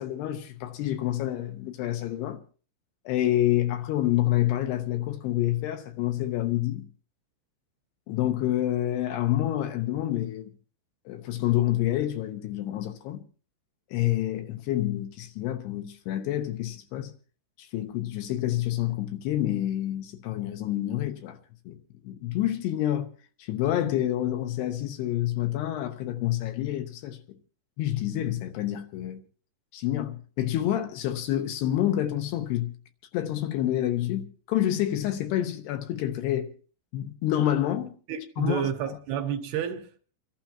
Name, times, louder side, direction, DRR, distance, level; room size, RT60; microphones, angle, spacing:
voice 1, 0.0-2.4 3.1-6.9 8.1-10.5 11.1-13.2 13.9-17.1 17.6-21.4 21.7-21.8 22.0-23.1 23.4-27.2 27.8-29.2 29.7-32.7 33.1-36.5 36.9-37.9 38.4-38.7, left 13 dB, 80° left, 2.9 m, -28 dB
voice 2, 38.1-40.0, right 8 dB, 75° right, 2.8 m, -30 dB
29.5 x 12.0 x 2.9 m
omnidirectional pair, 5.1 m